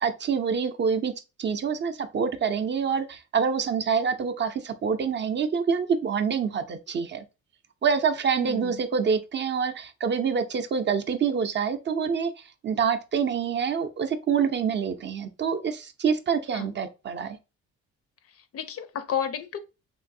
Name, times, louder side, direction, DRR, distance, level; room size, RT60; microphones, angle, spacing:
voice 1, 0.0-1.1 1.4-7.2 7.8-12.3 12.6-17.4, right 6 dB, 40° right, 0.4 m, -26 dB
voice 2, 8.4-8.8 16.5-16.7 18.3-19.6, left 8 dB, 55° left, 0.4 m, -32 dB
3.0 x 2.6 x 2.6 m
cardioid pair, 90°, 30 cm